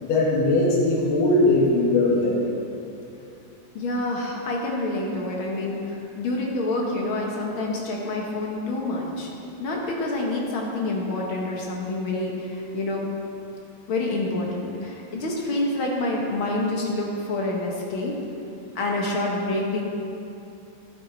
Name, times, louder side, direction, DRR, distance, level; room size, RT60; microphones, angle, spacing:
voice 1, 0.0-2.5, left 2 dB, 70° left, -6 dB, 3.5 m, -20 dB
voice 2, 3.7-9.3 9.6-13.1 13.9-18.2 18.7-19.8, left 2 dB, 55° left, -2 dB, 1.5 m, -27 dB
13.0 x 10.0 x 4.1 m, 2.7 s
omnidirectional pair, 4.0 m